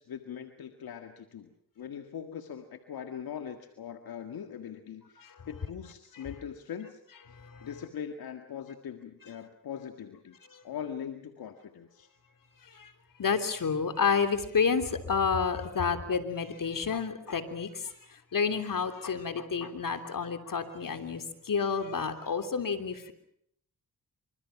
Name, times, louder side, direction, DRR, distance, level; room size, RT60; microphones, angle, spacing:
voice 1, 0.0-1.5 1.8-7.0 7.6-10.4 10.6-12.1, left 8 dB, 85° left, 6 dB, 1.9 m, -41 dB
voice 2, 7.3-7.7 10.5-10.6 12.6-12.9 13.2-23.1, left 5 dB, 65° left, 9 dB, 3.3 m, -30 dB
26.0 x 25.5 x 6.0 m, 0.69 s
cardioid pair, 55°, 36 cm